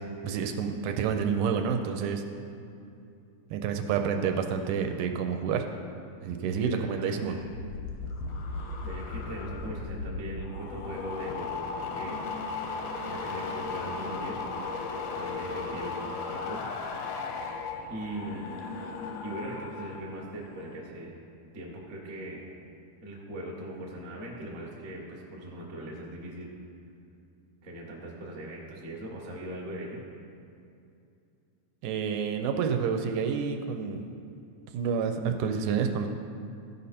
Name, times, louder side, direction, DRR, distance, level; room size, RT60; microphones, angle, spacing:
voice 1, 0.2-2.2 3.5-5.7 6.2-7.3 31.8-34.1 34.7-36.1, right 6 dB, 80° right, 5 dB, 2.0 m, -29 dB
voice 2, 6.6-7.4 8.8-12.2 13.0-14.4 15.1-16.6 17.9-18.5 19.2-21.2 21.5-22.5 23.0-26.5 27.6-30.0, right 1 dB, 45° right, -3 dB, 0.9 m, -40 dB
sound 1, 7.4-20.0 20.3-20.7, left 4 dB, 80° left, 1.4 m, -36 dB
14.0 x 5.4 x 4.2 m, 2.5 s
omnidirectional pair, 3.8 m